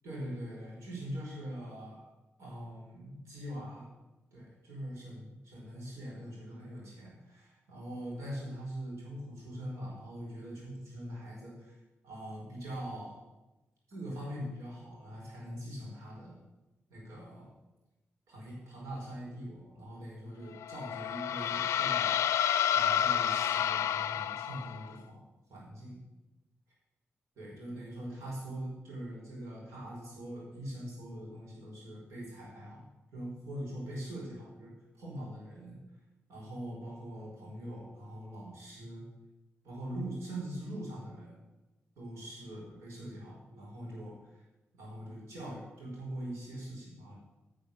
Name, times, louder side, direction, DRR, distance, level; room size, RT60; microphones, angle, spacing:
voice 1, 0.0-2.0 2.4-3.9 4.3-11.8 12.0-13.2 13.9-16.4 16.9-17.5 18.3-22.1 22.7-25.2 25.5-26.0 27.4-32.9 33.1-35.8 36.3-39.0 39.6-41.4 42.0-44.4 44.8-47.1, right 1 dB, 85° right, -4 dB, 4.7 m, -42 dB
sound 1, 20.6-24.9, left 10 dB, 85° left, 0.4 m, -30 dB
11.0 x 6.3 x 6.9 m, 1.0 s
cardioid pair, 55°, 5 cm